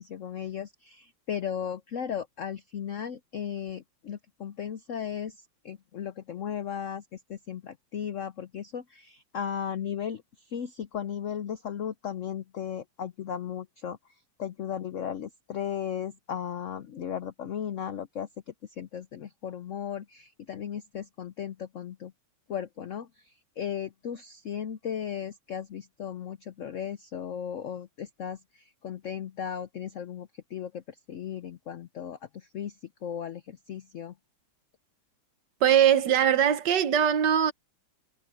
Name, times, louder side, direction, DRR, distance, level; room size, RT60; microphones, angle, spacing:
voice 1, 0.0-22.1 22.5-34.1, left 8 dB, 75° left, 0.7 m, -36 dB
voice 2, 35.6-37.5, right 9 dB, 65° right, 1.5 m, -21 dB
omnidirectional pair, 2.1 m